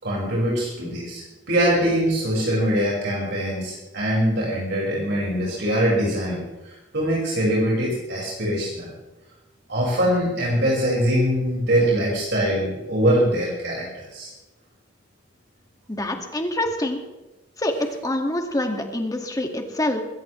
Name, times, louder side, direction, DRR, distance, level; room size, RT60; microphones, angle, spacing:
voice 1, 0.0-8.9 9.7-14.3, equal, 65° right, -4 dB, 5.4 m, -23 dB
voice 2, 15.9-17.0 17.6-20.0, left 1 dB, 20° left, 4 dB, 2.0 m, -26 dB
21.5 x 16.0 x 3.2 m, 1.0 s
head